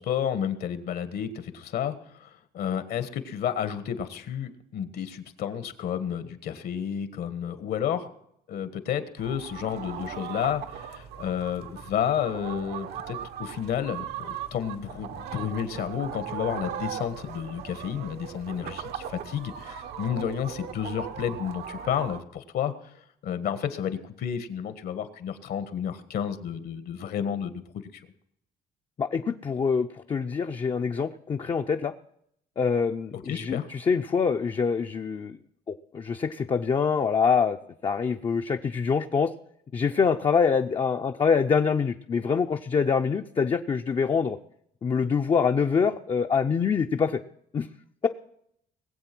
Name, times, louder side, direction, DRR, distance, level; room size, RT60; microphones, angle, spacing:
voice 1, 0.0-8.1 8.5-22.7 23.2-28.0 33.1-33.7, left 9 dB, 65° left, 11 dB, 1.5 m, -31 dB
sound 1, 9.2-22.2, right 9 dB, 75° right, 1.2 m, -38 dB
voice 2, 29.0-31.9 32.6-35.4 35.7-37.6 37.8-39.3 39.7-44.4 44.8-47.2 47.5-47.7, left 6 dB, 30° left, 4 dB, 0.6 m, -25 dB
20.0 x 7.9 x 6.1 m, 0.74 s
cardioid pair, 110°, 17 cm